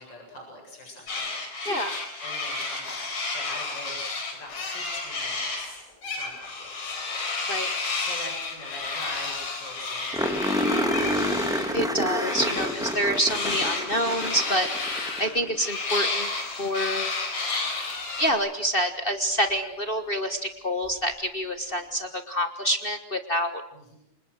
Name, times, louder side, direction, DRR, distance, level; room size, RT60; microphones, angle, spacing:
voice 1, 0.0-1.7 2.2-3.1 3.3-7.0 8.0-11.5 23.7-24.0, left 1 dB, 35° left, 0 dB, 8.5 m, -44 dB
sound 1, 1.1-5.7 6.0-11.7 12.2-18.3, left 3 dB, 75° left, 5.8 m, -31 dB
voice 2, 1.7-2.1 7.5-7.8 11.7-16.3 16.6-17.1 18.2-23.6, equal, 55° left, 8 dB, 0.6 m, -27 dB
sound 2, 8.7-8.8 9.0-9.1 9.4-9.5 10.1-15.6 17.9-18.0 20.8-20.9, equal, ahead, 2.6 m, -28 dB
29.5 x 26.0 x 6.4 m, 0.74 s
omnidirectional pair, 3.3 m